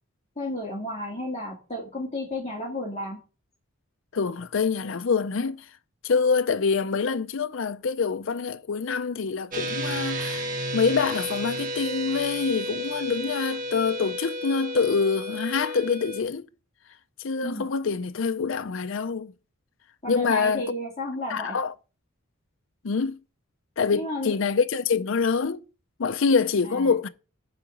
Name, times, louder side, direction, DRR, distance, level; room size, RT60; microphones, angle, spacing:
voice 1, 0.4-3.2 17.4-17.6 20.0-21.6 23.9-24.3 26.6-27.0, left 1 dB, 30° left, 2.2 m, -32 dB
voice 2, 4.1-5.7 6.0-10.5 10.7-16.5 17.2-19.3 20.1-20.6 21.3-21.7 22.8-23.2 23.8-25.6 26.0-27.1, left 5 dB, 65° left, 0.5 m, -25 dB
sound 1, 9.5-16.2, equal, 40° right, 1.7 m, -32 dB
10.5 x 3.9 x 7.2 m
head